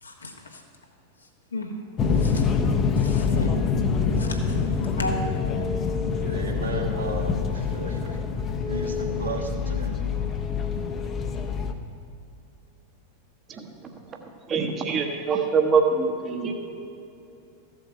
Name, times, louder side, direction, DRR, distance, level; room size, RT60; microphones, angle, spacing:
voice 1, 0.0-0.6 1.2-1.8 2.1-2.4 3.0-3.6 4.1-4.6 5.0-5.1, left 2 dB, 75° left, 2 dB, 1.3 m, -35 dB
sound 1, 2.0-11.7, left 5 dB, 25° left, 0.7 m, -25 dB
voice 2, 6.2-8.2 8.7-10.0, right 2 dB, 70° right, 3 dB, 1.3 m, -34 dB
voice 3, 14.5-16.5, right 5 dB, 25° right, 4 dB, 1.0 m, -24 dB
14.0 x 7.4 x 4.8 m, 2.7 s
figure-of-eight pair, 90°, 0 cm